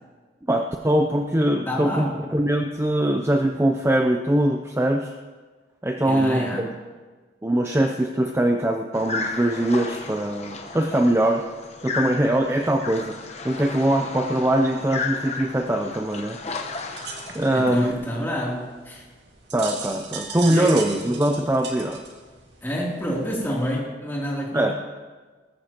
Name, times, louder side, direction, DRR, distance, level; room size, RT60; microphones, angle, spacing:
voice 1, 0.5-5.1 5.8-6.4 7.4-11.4 11.8-13.2 13.4-16.4 17.3-17.9 19.5-22.0 24.5-24.7, right 1 dB, 15° right, 3 dB, 0.5 m, -22 dB
voice 2, 1.7-2.2 6.0-6.7 17.5-19.0 20.5-20.7 22.6-24.7, equal, 10° left, -4 dB, 3.1 m, -28 dB
sound 1, 8.9-17.9, left 4 dB, 35° left, 1.1 m, -34 dB
sound 2, 16.9-23.8, right 5 dB, 70° right, 2.0 m, -38 dB
19.5 x 14.5 x 3.0 m, 1.4 s
head